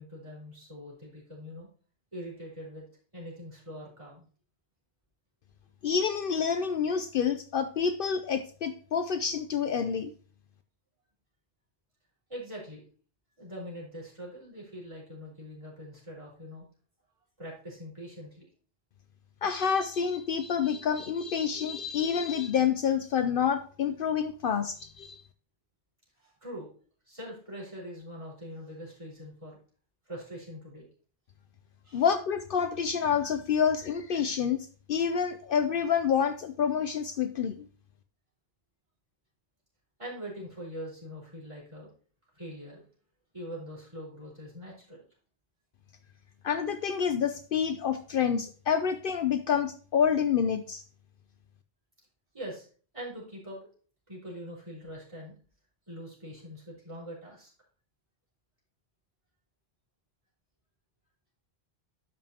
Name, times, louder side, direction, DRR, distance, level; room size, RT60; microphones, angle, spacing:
voice 1, 0.0-1.7 2.1-2.8 3.1-4.2 12.3-12.8 13.4-16.6 17.4-18.5 26.2-26.7 27.1-29.6 30.1-30.8 31.8-32.0 40.0-41.9 42.3-42.8 43.3-45.0 52.3-52.7 52.9-53.7 54.1-55.3 55.9-57.5, equal, 30° right, -5 dB, 4.5 m, -43 dB
voice 2, 5.8-10.1 19.4-25.2 31.9-37.7 46.4-50.8, left 7 dB, 65° left, 9 dB, 0.7 m, -28 dB
12.0 x 5.3 x 2.8 m, 0.41 s
omnidirectional pair, 1.1 m